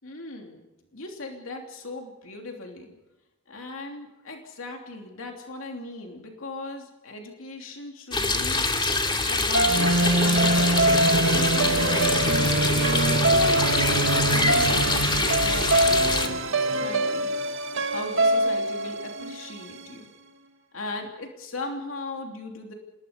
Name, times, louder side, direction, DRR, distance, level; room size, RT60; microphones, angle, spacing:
voice 1, 0.0-0.6 0.9-2.9 3.5-8.7 9.3-12.0 12.6-17.3 17.6-20.1 20.7-22.7, left 2 dB, 70° left, 2 dB, 3.2 m, -38 dB
sound 1, 8.1-16.3, left 3 dB, 25° left, 2.5 m, -25 dB
sound 2, 9.5-19.8, right 2 dB, 70° right, 2.2 m, -23 dB
27.0 x 21.0 x 5.3 m, 1.0 s
head